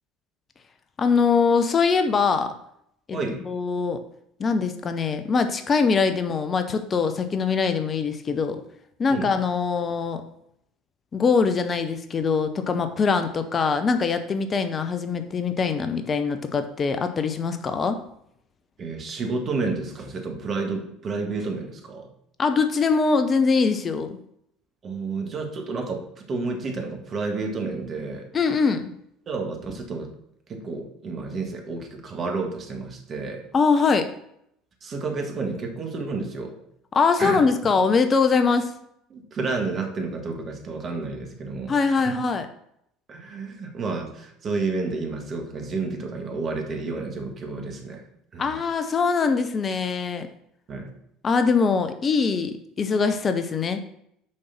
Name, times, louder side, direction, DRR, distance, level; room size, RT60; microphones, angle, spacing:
voice 1, 1.0-2.5 3.1-3.2 3.5-4.0 4.4-8.6 9.0-10.2 11.1-18.0 22.4-24.2 28.3-28.8 33.5-34.1 36.9-38.7 41.7-42.5 48.4-50.3 51.2-53.8, left 5 dB, 35° left, 8 dB, 0.7 m, -22 dB
voice 2, 18.8-22.1 24.8-28.3 29.3-30.1 30.5-33.4 34.8-36.6 37.2-37.4 39.1-42.1 43.1-48.0 48.3-48.5 50.7-50.9, right 3 dB, 40° right, 4 dB, 1.7 m, -30 dB
6.5 x 5.4 x 5.8 m, 0.73 s
figure-of-eight pair, 60°, 0 cm